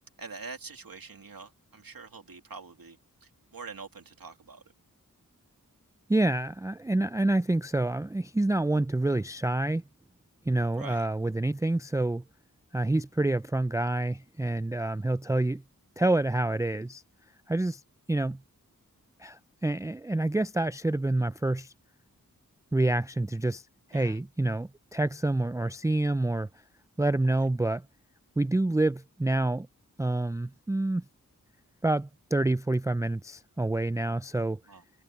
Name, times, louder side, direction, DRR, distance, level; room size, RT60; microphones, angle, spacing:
voice 1, 0.2-4.6 10.8-11.1 23.9-24.2 27.3-27.5 34.7-34.8, right 4 dB, 90° right, 2.7 m, -45 dB
voice 2, 6.1-9.8 10.5-12.2 12.7-15.6 16.0-17.0 17.5-17.8 18.1-18.4 19.2-21.7 22.7-26.5 27.0-27.8 28.4-29.7 30.0-31.0 31.8-34.6, right 2 dB, 10° right, 0.4 m, -27 dB
cardioid pair, 45°, 34 cm